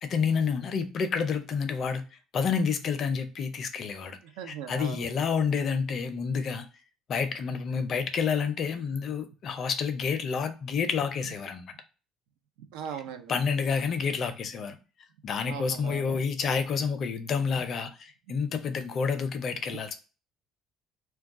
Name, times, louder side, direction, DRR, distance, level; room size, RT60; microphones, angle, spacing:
voice 1, 0.0-2.0 2.3-4.2 4.5-6.7 7.1-11.7 13.3-14.8 15.2-20.0, left 6 dB, 50° left, 0.5 m, -29 dB
voice 2, 4.2-5.1 12.7-13.4 15.4-16.2 18.3-18.4, right 8 dB, 90° right, 0.4 m, -39 dB
2.3 x 2.3 x 3.5 m
supercardioid pair, 95°, 0 cm